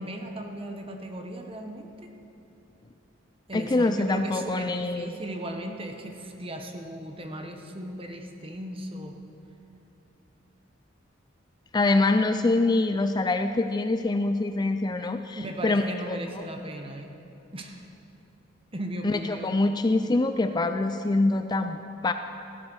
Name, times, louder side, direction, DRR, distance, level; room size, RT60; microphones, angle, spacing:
voice 1, 0.0-2.1 3.5-9.1 15.3-17.1 17.5-17.8 18.7-19.5, right 1 dB, 30° right, 4 dB, 1.2 m, -37 dB
voice 2, 3.5-5.1 11.7-16.5 19.0-22.1, left 2 dB, 20° left, 8 dB, 0.4 m, -25 dB
15.0 x 10.5 x 6.3 m, 3.0 s
head